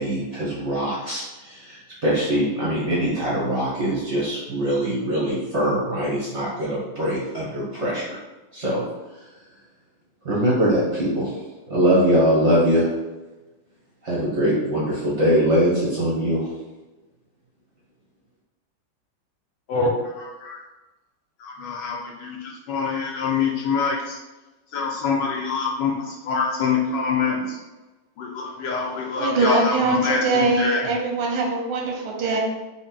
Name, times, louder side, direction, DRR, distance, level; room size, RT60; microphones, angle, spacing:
voice 1, 0.0-8.2 8.5-8.8 10.2-11.3 11.7-12.9 14.0-16.5, equal, 60° right, -7 dB, 0.7 m, -22 dB
voice 2, 19.7-20.6 21.4-24.2 24.7-27.6 28.2-30.9, left 5 dB, 75° left, -1 dB, 1.1 m, -25 dB
voice 3, 29.2-32.4, right 3 dB, 90° right, 0 dB, 1.6 m, -22 dB
3.8 x 2.0 x 3.8 m, 1.1 s
omnidirectional pair, 2.3 m